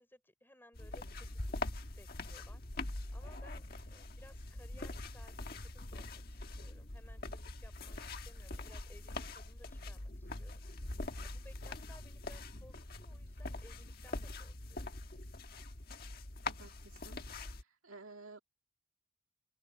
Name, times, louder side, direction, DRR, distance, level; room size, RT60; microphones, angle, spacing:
voice 1, 0.0-1.4 2.0-14.8, left 1 dB, 10° left, 5.4 m, -61 dB
sound 1, 0.7-17.6, left 2 dB, 45° left, 1.4 m, -43 dB
voice 2, 16.5-17.3 17.5-18.4, right 3 dB, 80° right, 2.4 m, -54 dB
head